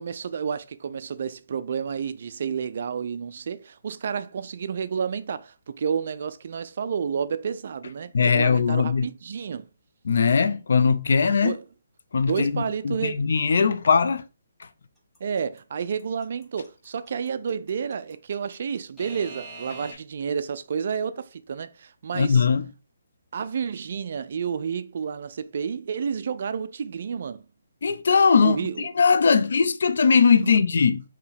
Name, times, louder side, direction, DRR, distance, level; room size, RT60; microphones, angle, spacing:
voice 1, 0.0-9.7 11.4-11.6 12.2-13.2 15.2-22.5 23.3-27.4 28.4-28.9 30.4-30.5, right 6 dB, 50° right, 0.3 m, -30 dB
voice 2, 8.1-9.1 10.1-11.5 12.1-14.2 22.1-22.7 27.8-31.0, left 5 dB, 65° left, 0.4 m, -20 dB
Alarm / Clock, 15.1-19.9, right 2 dB, 5° left, 0.9 m, -42 dB
4.5 x 2.9 x 3.3 m
hypercardioid pair, 165°, 0 cm